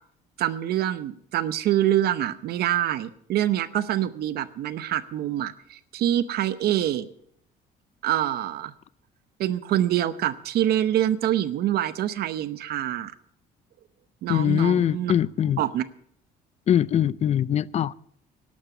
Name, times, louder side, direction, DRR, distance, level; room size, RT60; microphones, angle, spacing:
voice 1, 0.4-7.1 8.0-8.7 9.4-13.1 14.2-15.1 15.6-15.8, right 12 dB, 70° right, 0.8 m, -25 dB
voice 2, 14.3-15.6 16.7-17.9, left 10 dB, 40° left, 0.4 m, -22 dB
12.0 x 11.5 x 6.8 m
cardioid pair, 110°, 17 cm